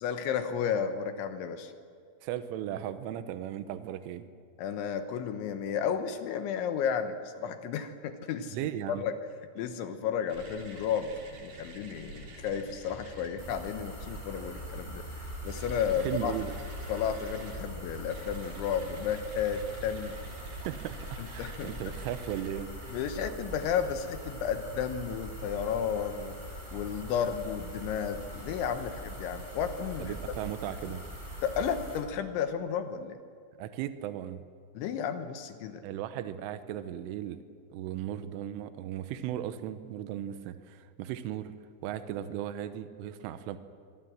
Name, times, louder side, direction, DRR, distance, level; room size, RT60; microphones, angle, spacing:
voice 1, 0.0-1.7 4.6-8.6 9.0-9.1 9.6-16.4 16.9-20.2 21.2-21.8 22.9-26.4 26.7-30.1 31.4-33.2 34.7-35.8, left 7 dB, 75° left, 8 dB, 3.3 m, -33 dB
voice 2, 2.2-4.3 8.5-9.0 16.0-16.5 20.6-21.0 21.3-22.7 30.0-31.0 33.6-34.4 35.8-37.4 37.7-41.5 41.8-43.6, right 11 dB, 80° right, 10 dB, 3.4 m, -36 dB
sound 1, 10.3-23.0, equal, 45° right, 5.0 m, -47 dB
sound 2, 13.4-32.0, right 1 dB, 10° right, 8.0 m, -42 dB
25.5 x 23.0 x 7.5 m, 2.2 s
omnidirectional pair, 5.9 m